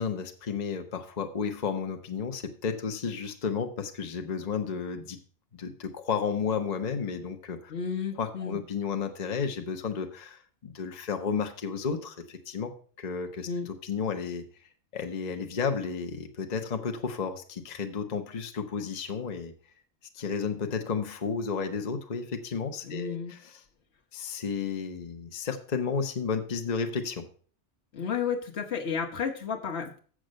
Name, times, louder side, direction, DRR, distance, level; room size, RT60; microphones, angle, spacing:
voice 1, 0.0-5.2 5.5-7.7 8.2-14.4 14.9-19.5 20.1-23.6 24.1-27.3, left 5 dB, 40° left, 5 dB, 0.9 m, -32 dB
voice 2, 7.7-8.6 13.5-13.7 22.8-23.3 27.9-30.0, left 6 dB, 65° left, 4 dB, 1.3 m, -32 dB
7.7 x 6.3 x 6.3 m, 0.43 s
omnidirectional pair, 1.2 m